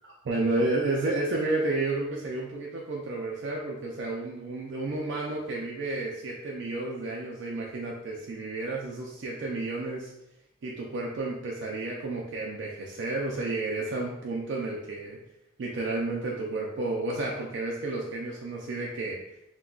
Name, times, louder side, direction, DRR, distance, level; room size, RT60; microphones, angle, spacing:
voice 1, 0.2-10.1 10.6-15.2 15.6-19.2, right 2 dB, 55° right, -3 dB, 0.4 m, -31 dB
2.3 x 2.2 x 3.6 m, 0.87 s
head